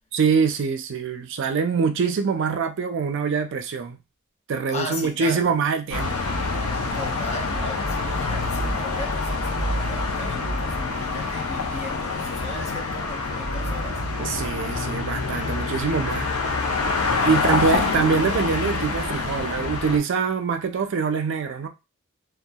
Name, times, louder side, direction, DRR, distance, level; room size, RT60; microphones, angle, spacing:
voice 1, 0.1-4.0 4.5-6.2 14.2-16.3 17.2-21.7, right 5 dB, 55° right, 0.4 m, -24 dB
voice 2, 4.7-5.5 6.9-14.6 17.2-17.7, left 2 dB, 30° left, 0.5 m, -37 dB
sound 1, 5.9-20.0, left 3 dB, 75° left, 0.6 m, -26 dB
2.7 x 2.3 x 2.2 m
head